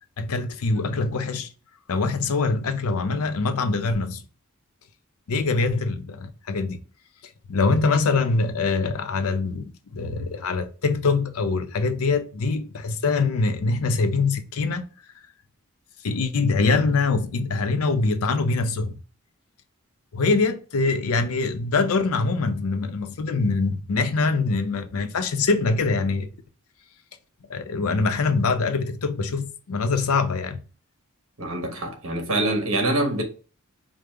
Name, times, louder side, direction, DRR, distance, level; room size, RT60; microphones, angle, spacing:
voice 1, 0.2-1.5 1.9-4.2 5.3-6.8 7.5-14.9 16.0-19.0 20.1-26.3 27.5-30.6, left 3 dB, 80° left, 0.6 m, -24 dB
voice 2, 31.4-33.2, right 1 dB, 70° right, 1.1 m, -25 dB
5.1 x 2.0 x 3.3 m
head